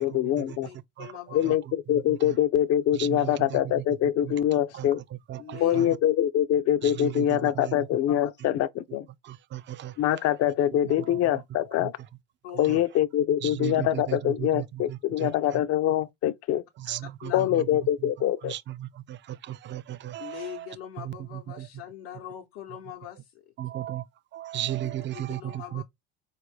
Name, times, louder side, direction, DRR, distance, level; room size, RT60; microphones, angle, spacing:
voice 1, 0.0-0.7 1.3-5.0 5.6-9.1 10.0-11.9 12.6-16.6 17.3-18.5, left 11 dB, 55° left, 0.6 m, -24 dB
voice 2, 0.6-1.6 5.4-5.8 12.4-12.6 17.2-17.5 20.2-23.4 24.8-25.8, left 11 dB, 80° left, 0.8 m, -42 dB
voice 3, 2.9-3.8 4.2-4.3 4.7-4.9 5.3-5.9 6.8-7.7 9.2-9.9 10.9-11.3 11.8-11.9 12.7-12.8 13.4-15.6 16.8-17.7 18.4-20.7 21.0-21.7 23.6-24.0 24.3-25.8, right 13 dB, 40° right, 0.4 m, -35 dB
4.2 x 2.5 x 3.1 m
supercardioid pair, 80°, 30 cm